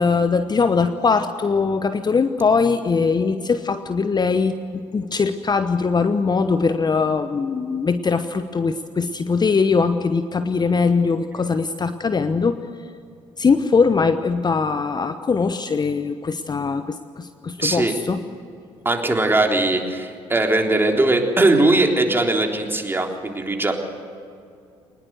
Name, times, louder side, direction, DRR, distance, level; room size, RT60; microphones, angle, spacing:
voice 1, 0.0-12.6 13.4-18.2, left 4 dB, 30° left, 10 dB, 1.0 m, -21 dB
voice 2, 17.6-17.9 18.9-23.7, right 2 dB, 15° right, 2 dB, 3.7 m, -20 dB
23.0 x 20.0 x 8.1 m, 2.4 s
hypercardioid pair, 55°, 15 cm